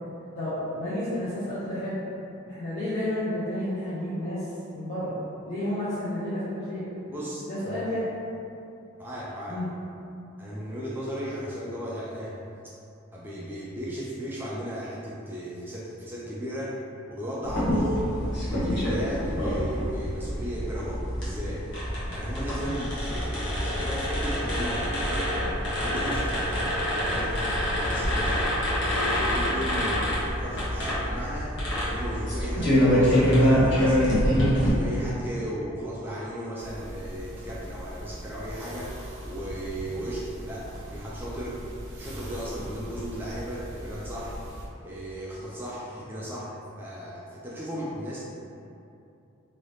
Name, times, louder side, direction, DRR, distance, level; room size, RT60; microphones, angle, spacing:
voice 1, 0.4-2.0 2.5-4.4 4.7-5.2 5.4-6.8 7.5-8.0 9.5-9.7 22.7-22.8, left 1 dB, 30° left, -13 dB, 0.6 m, -31 dB
voice 2, 7.1-7.9 9.0-9.6 10.4-12.4 13.1-16.8 17.1-21.7 22.1-25.4 25.8-26.7 27.1-28.4 28.8-31.6 31.8-34.2 34.6-41.6 41.9-44.4 44.8-48.3, equal, 10° right, -7 dB, 0.3 m, -35 dB
sound 1, 17.4-34.7, equal, 55° left, 1.0 m, -25 dB
sound 2, 36.6-44.7, right 1 dB, 65° right, 0.6 m, -40 dB
2.8 x 2.7 x 3.2 m, 2.6 s
head